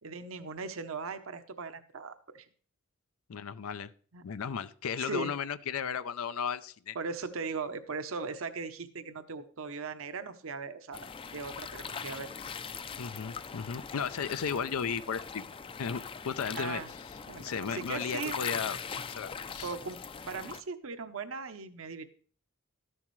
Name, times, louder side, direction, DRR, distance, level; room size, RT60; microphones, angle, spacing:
voice 1, 0.0-2.5 4.1-4.2 5.0-5.3 6.9-12.3 16.5-16.9 17.3-18.4 19.6-20.0 20.3-22.1, right 4 dB, 70° right, 10 dB, 0.8 m, -39 dB
voice 2, 3.3-3.9 4.2-7.0 13.0-15.4 15.8-16.8 17.4-18.8 19.1-19.7, left 6 dB, 90° left, 12 dB, 0.5 m, -35 dB
sound 1, 10.9-20.6, left 6 dB, 25° left, 0.4 m, -41 dB
13.5 x 11.0 x 3.1 m, 0.43 s
head